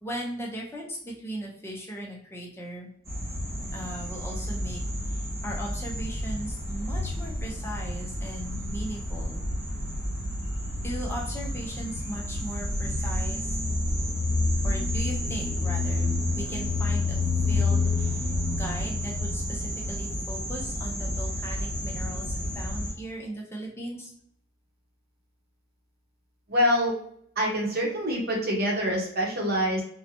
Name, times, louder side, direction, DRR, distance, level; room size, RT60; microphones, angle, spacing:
voice 1, 0.0-2.9 3.7-9.4 10.8-13.6 14.6-18.3 18.6-24.1, right 1 dB, 10° left, -2 dB, 0.4 m, -38 dB
sound 1, 3.0-22.9, left 2 dB, 15° right, 1.4 m, -29 dB
voice 2, 26.5-26.9 27.4-29.8, equal, 50° right, 0 dB, 0.8 m, -25 dB
2.7 x 2.1 x 2.6 m, 0.68 s
head